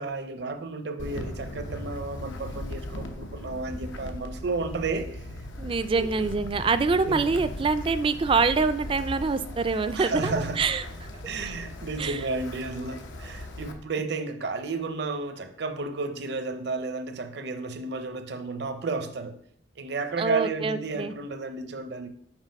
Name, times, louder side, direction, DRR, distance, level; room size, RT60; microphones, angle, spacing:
voice 1, 0.0-5.2 5.9-6.1 7.1-7.2 9.9-10.6 11.2-19.4 19.8-22.1, right 3 dB, 60° right, 0.7 m, -32 dB
Wind, 1.0-13.7, left 1 dB, 90° left, 0.9 m, -38 dB
voice 2, 5.6-10.8 12.0-12.2 20.2-21.1, right 4 dB, 30° right, 0.3 m, -25 dB
6.2 x 4.4 x 5.3 m
head